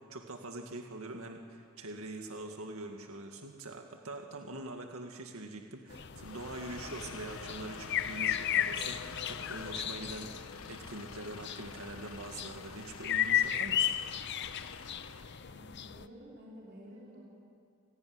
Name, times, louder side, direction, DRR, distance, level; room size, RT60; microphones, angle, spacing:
voice 1, 0.0-14.0, right 2 dB, 80° right, 3 dB, 2.0 m, -44 dB
sound 1, 5.9-16.1, left 10 dB, 50° left, 0.7 m, -35 dB
sound 2, 6.1-15.4, left 5 dB, 80° left, 1.4 m, -47 dB
voice 2, 15.4-17.2, equal, 50° right, -6 dB, 5.8 m, -51 dB
28.5 x 17.5 x 9.6 m, 2.4 s
head